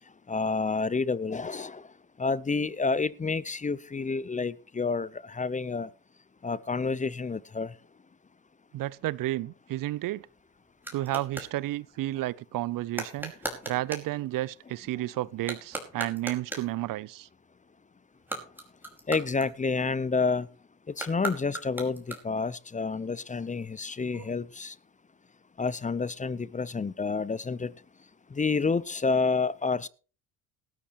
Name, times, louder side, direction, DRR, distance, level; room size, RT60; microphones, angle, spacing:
voice 1, 0.3-1.9 2.2-5.9 6.4-7.7 19.1-20.5 21.0-24.7 25.6-27.7 28.3-29.9, left 4 dB, 20° left, 0.7 m, -29 dB
voice 2, 8.7-10.3 10.9-13.3 13.7-17.3 24.1-24.3, right 16 dB, 55° right, 0.6 m, -32 dB
sound 1, 9.8-11.6 12.9-14.1 15.3-16.8 18.1-20.0 20.9-22.5, right 1 dB, 5° right, 5.0 m, -39 dB
18.0 x 13.5 x 3.0 m
hypercardioid pair, 70°, 40 cm